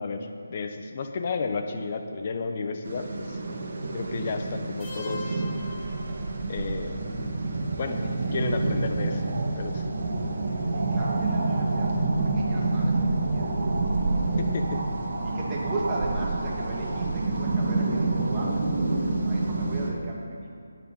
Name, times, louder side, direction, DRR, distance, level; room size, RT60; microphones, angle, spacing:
voice 1, 0.0-3.4 3.9-5.4 6.5-7.0 7.8-8.0 8.3-9.2 9.6-9.8 14.4-14.8, left 4 dB, 35° left, 5 dB, 1.2 m, -32 dB
sound 1, 2.8-19.9, right 2 dB, 50° right, 1.9 m, -28 dB
sound 2, 4.8-6.8, left 2 dB, 20° left, 2.0 m, -42 dB
voice 2, 7.9-8.5 10.7-13.8 15.2-20.5, right 2 dB, 15° right, -5 dB, 2.4 m, -37 dB
17.0 x 9.9 x 5.5 m, 2.5 s
figure-of-eight pair, 165°, 0 cm